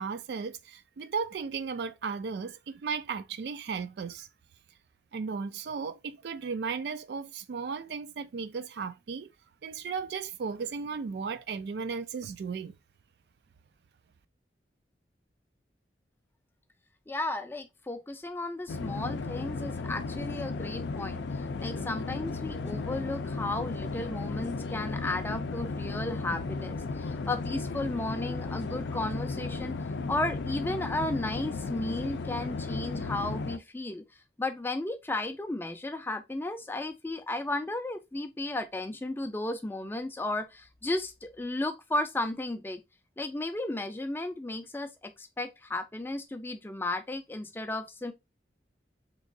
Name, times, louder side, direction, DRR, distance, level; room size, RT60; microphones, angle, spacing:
voice 1, 0.0-4.3 5.1-9.3 9.6-12.7, right 5 dB, 65° right, 0.3 m, -35 dB
voice 2, 17.1-34.0 34.4-42.8 43.2-48.1, left 2 dB, 10° left, 0.3 m, -34 dB
sound 1, 18.7-33.6, left 3 dB, 80° left, 0.4 m, -35 dB
3.6 x 3.0 x 2.5 m
head